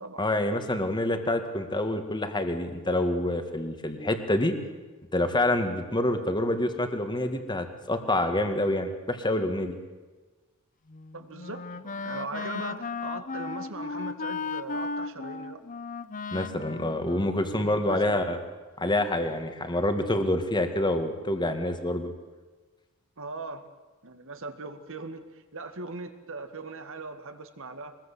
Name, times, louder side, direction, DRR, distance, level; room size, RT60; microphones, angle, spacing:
voice 1, 0.2-4.6 5.1-9.8 16.3-18.4 18.8-22.1, left 1 dB, 20° left, 7 dB, 2.0 m, -27 dB
Wind instrument woodwind instrument, 10.9-18.0, left 4 dB, 35° left, 0.8 m, -36 dB
voice 2, 11.1-15.6 17.8-18.2 23.2-23.7 24.0-28.0, right 3 dB, 60° right, 8 dB, 2.0 m, -40 dB
23.5 x 20.0 x 8.5 m, 1.3 s
head